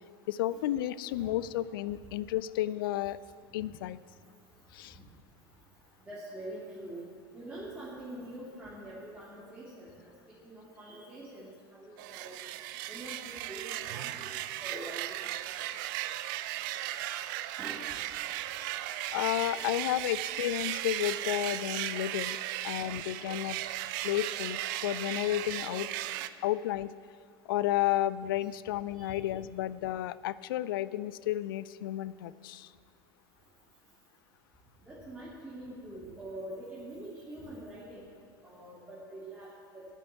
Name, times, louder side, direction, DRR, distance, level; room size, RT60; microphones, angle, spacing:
voice 1, 0.3-3.2 3.5-4.0 4.7-5.0 19.1-22.4 22.6-23.6 24.0-25.9 26.4-26.9 27.5-32.7, left 13 dB, 65° left, 17 dB, 0.4 m, -32 dB
voice 2, 6.0-7.0 7.3-10.1 10.4-12.4 12.9-14.3 14.6-15.2 17.6-17.8 19.4-19.9 25.9-26.1 29.0-29.1 34.9-38.1 38.4-40.0, right 1 dB, 10° right, -8 dB, 3.0 m, -45 dB
sound 1, 12.0-26.3, right 14 dB, 55° right, 0.5 m, -36 dB
10.5 x 8.3 x 8.2 m, 2.4 s
figure-of-eight pair, 80°, 13 cm